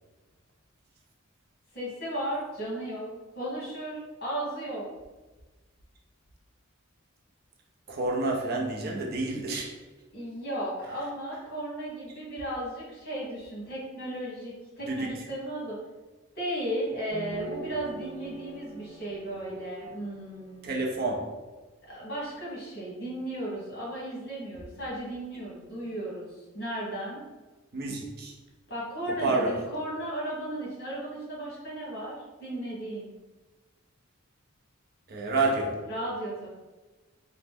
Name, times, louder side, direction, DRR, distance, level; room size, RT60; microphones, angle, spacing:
voice 1, 1.7-3.1 3.3-4.9 10.1-15.8 16.3-20.7 21.9-26.3 26.5-27.2 28.7-33.1 35.9-36.5, right 1 dB, 50° left, -6 dB, 1.2 m, -35 dB
voice 2, 7.9-9.7 14.9-15.2 20.6-21.3 27.7-28.3 29.1-29.7 35.1-35.9, right 2 dB, 45° right, -1 dB, 0.4 m, -29 dB
sound 1, 17.1-20.9, right 1 dB, 15° right, 1.0 m, -42 dB
2.9 x 2.0 x 3.5 m, 1.2 s
head